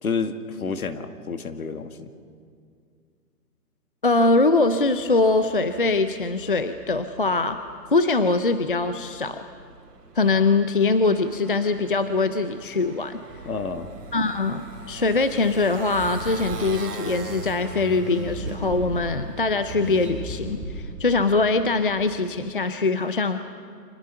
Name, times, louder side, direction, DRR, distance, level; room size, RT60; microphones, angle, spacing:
voice 1, 0.0-2.1 13.5-13.9, left 5 dB, 60° left, 8 dB, 2.1 m, -29 dB
voice 2, 4.0-7.6 7.9-9.4 10.1-13.2 14.1-23.4, left 3 dB, 35° left, 10 dB, 0.6 m, -22 dB
Motorcycle, 4.4-19.7, right 4 dB, 75° right, 3.5 m, -43 dB
Car / Accelerating revving vroom, 13.3-22.5, right 2 dB, ahead, 2.0 m, -37 dB
29.5 x 25.5 x 5.7 m, 2.3 s
hypercardioid pair, 175°, 48 cm